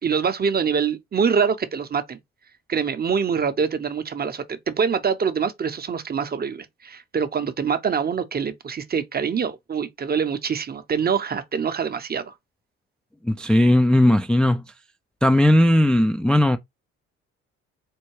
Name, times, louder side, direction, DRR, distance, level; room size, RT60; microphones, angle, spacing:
voice 1, 0.0-2.2 2.7-12.3, right 6 dB, 30° right, 0.7 m, -25 dB
voice 2, 13.2-14.7 15.2-16.6, left 1 dB, 5° left, 0.3 m, -17 dB
4.4 x 2.2 x 3.1 m
hypercardioid pair, 60°, 31 cm